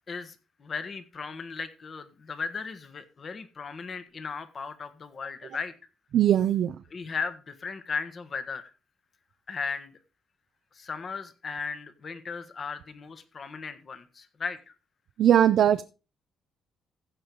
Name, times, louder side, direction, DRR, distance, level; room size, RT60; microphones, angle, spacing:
voice 1, 0.1-5.7 6.9-8.7 9.5-9.9 10.7-14.7, left 5 dB, 45° left, 11 dB, 1.6 m, -36 dB
voice 2, 6.1-6.8 15.2-15.8, right 10 dB, 70° right, 10 dB, 0.5 m, -20 dB
15.5 x 5.4 x 4.8 m, 0.32 s
cardioid pair, 90°, 0 cm